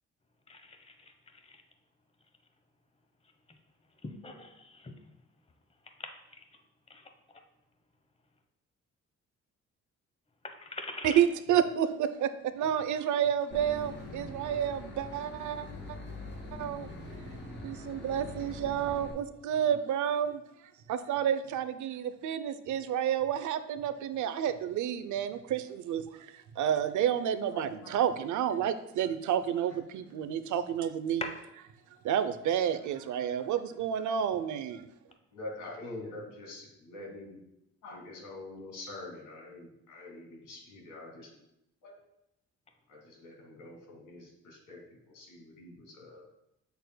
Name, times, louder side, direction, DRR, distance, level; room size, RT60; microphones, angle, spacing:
voice 1, 4.0-5.0 6.0-6.1 6.9-7.0 10.4-11.2 31.2-31.3, left 3 dB, 20° left, 6 dB, 0.9 m, -40 dB
voice 2, 11.0-15.6 16.5-16.9 17.6-20.4 20.9-31.3 32.0-34.9, right 9 dB, 75° right, 11 dB, 0.6 m, -30 dB
Boat Water vehicle / Engine, 13.5-19.1, left 2 dB, 35° left, 2.0 m, -43 dB
voice 3, 27.3-28.1 29.7-29.8 35.3-37.4 37.8-41.3 41.8-41.9 42.9-46.2, left 2 dB, 85° left, -2 dB, 2.3 m, -46 dB
7.9 x 6.7 x 2.2 m, 0.83 s
cardioid pair, 90°, 30 cm